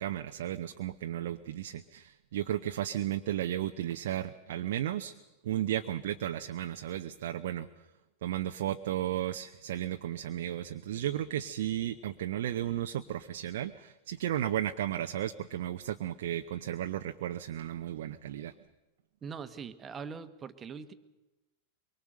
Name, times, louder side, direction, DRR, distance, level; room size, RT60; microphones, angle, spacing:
voice 1, 0.0-5.1 5.4-7.7 8.2-18.5, right 12 dB, 55° right, 7 dB, 0.8 m, -34 dB
voice 2, 19.2-20.9, right 6 dB, 20° right, 11 dB, 1.4 m, -42 dB
24.0 x 23.5 x 6.7 m, 1.1 s
figure-of-eight pair, 90°, 0 cm